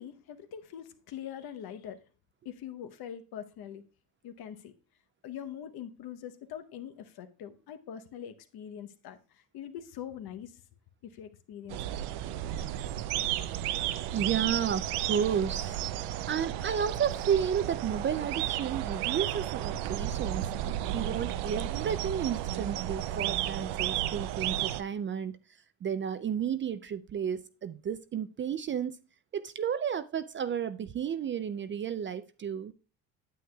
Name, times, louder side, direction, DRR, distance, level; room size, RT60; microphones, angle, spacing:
voice 1, 0.0-2.0 2.4-3.8 4.2-4.7 5.2-10.6 11.0-11.9 12.8-12.9, left 9 dB, 65° left, 0.9 m, -43 dB
sound 1, 11.7-24.8, right 12 dB, 80° right, 0.6 m, -33 dB
voice 2, 14.1-15.8 16.3-20.5 20.9-25.4 25.8-29.0 29.3-32.7, right 8 dB, 30° right, 0.4 m, -32 dB
9.2 x 7.8 x 2.3 m
supercardioid pair, 80°, 41 cm